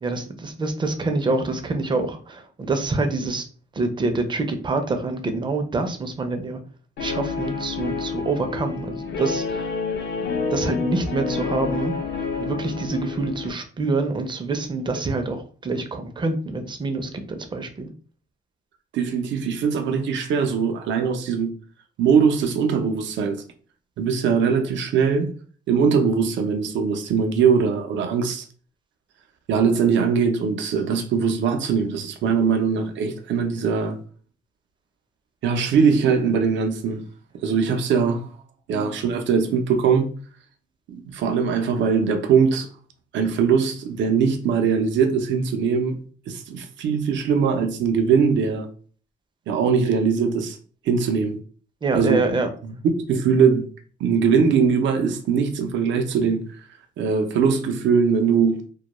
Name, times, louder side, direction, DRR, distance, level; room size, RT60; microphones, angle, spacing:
voice 1, 0.0-3.5 3.7-6.6 7.0-9.7 10.5-11.9 12.4-17.9 51.8-52.5, right 3 dB, 25° right, 0.4 m, -26 dB
Guitar, 7.0-13.5, left 4 dB, 70° left, 0.5 m, -28 dB
voice 2, 18.9-21.5 22.0-23.4 24.0-25.3 25.7-28.4 29.5-34.0 35.4-37.0 37.4-38.3 38.7-40.1 40.9-42.7 43.1-46.0 46.3-48.7 49.5-50.6 50.9-51.4 51.9-52.3 52.6-52.7 53.1-53.7 54.0-56.4 57.0-58.6, right 6 dB, 85° right, 0.5 m, -21 dB
2.2 x 2.1 x 2.9 m
cardioid pair, 120°, 19 cm